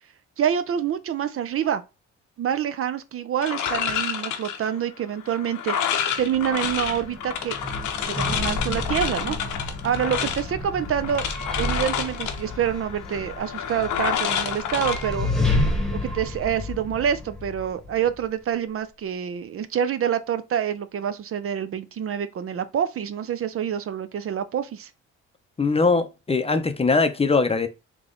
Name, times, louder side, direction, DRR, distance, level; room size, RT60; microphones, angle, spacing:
voice 1, 0.4-1.8 2.4-7.5 8.0-9.4 9.8-11.3 11.6-15.3 15.9-24.9, right 9 dB, 50° right, 0.5 m, -27 dB
sound 1, 3.4-15.7, left 8 dB, 80° left, 0.8 m, -29 dB
sound 2, 6.1-18.3, left 2 dB, ahead, 1.2 m, -30 dB
voice 2, 25.6-27.7, left 4 dB, 20° left, 0.6 m, -21 dB
3.7 x 3.0 x 3.8 m
cardioid pair, 90°, 30 cm